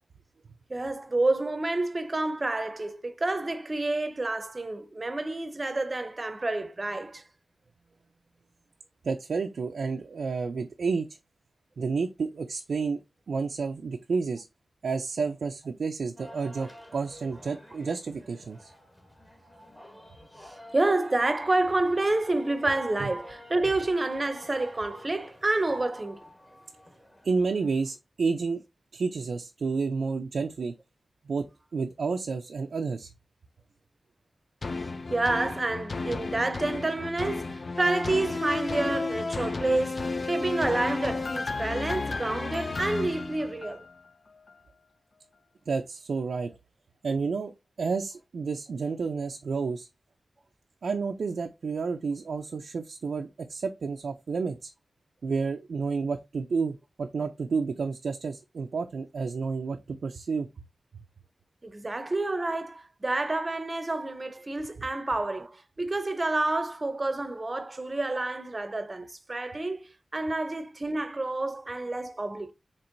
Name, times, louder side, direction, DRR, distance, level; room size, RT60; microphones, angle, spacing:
voice 1, 0.7-7.2 20.4-26.2 35.1-43.9 61.6-72.5, right 2 dB, 35° right, 0.6 m, -29 dB
voice 2, 9.0-11.1 11.8-13.0 13.3-14.5 14.8-18.7 23.0-23.1 27.2-28.6 28.9-30.7 31.3-31.4 31.7-33.1 45.7-46.5 47.0-47.5 47.8-49.9 50.8-54.7 55.2-60.5, right 4 dB, 80° right, 0.4 m, -30 dB
sound 1, 16.2-27.9, left 1 dB, 15° left, 1.2 m, -50 dB
sound 2, 34.6-44.0 44.5-44.6, left 3 dB, 55° left, 0.3 m, -33 dB
4.4 x 2.9 x 2.5 m
cardioid pair, 55°, 0 cm